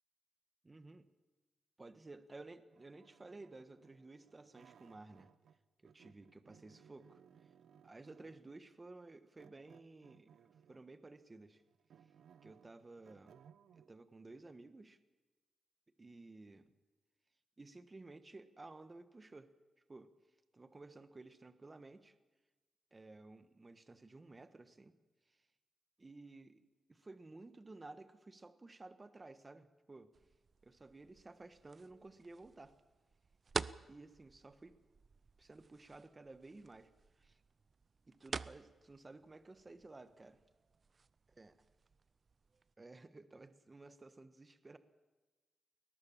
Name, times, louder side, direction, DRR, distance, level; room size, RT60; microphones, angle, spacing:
voice 1, 0.6-1.1 1.8-5.3 5.8-7.2 7.8-10.3 10.7-11.6 12.4-13.3 13.7-15.0 16.0-16.7 17.6-19.5 19.9-20.1 20.5-22.1 22.9-24.9 25.3-25.5 26.0-30.1 30.6-32.7 33.9-34.8 35.4-36.9 37.2-37.4 38.1-40.4 41.4-41.5 42.8-44.8, right 2 dB, 25° right, 11 dB, 1.4 m, -55 dB
sound 1, 2.7-5.6 5.8-8.5 9.4-10.9 11.4-13.9, right 8 dB, 85° right, 0.9 m, -64 dB
sound 2, 30.1-42.7, right 4 dB, 40° right, 0.6 m, -49 dB
22.0 x 19.5 x 7.3 m, 1.2 s
wide cardioid pair, 110°, 0 cm